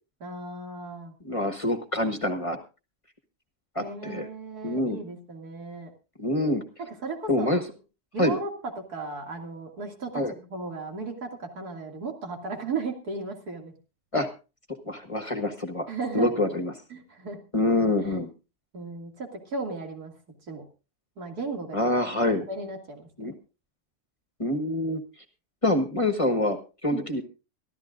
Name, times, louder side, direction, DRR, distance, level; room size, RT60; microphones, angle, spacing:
voice 1, 0.2-1.1 3.8-5.9 6.8-7.5 8.1-13.7 15.9-16.3 16.9-17.4 18.1-18.2 18.7-20.1 20.5-20.6 21.2-21.8 22.5-23.1 26.9-27.0, right 3 dB, 90° right, 3 dB, 3.1 m, -35 dB
voice 2, 1.2-2.6 3.7-4.3 4.6-5.0 6.2-6.6 7.3-7.6 8.2-8.4 10.1-10.3 14.1-14.3 14.8-16.7 17.5-18.3 21.7-22.5 23.2-23.3 24.4-25.0 25.6-27.2, left 1 dB, 20° left, 7 dB, 1.3 m, -26 dB
24.5 x 13.0 x 2.5 m, 0.31 s
omnidirectional pair, 1.6 m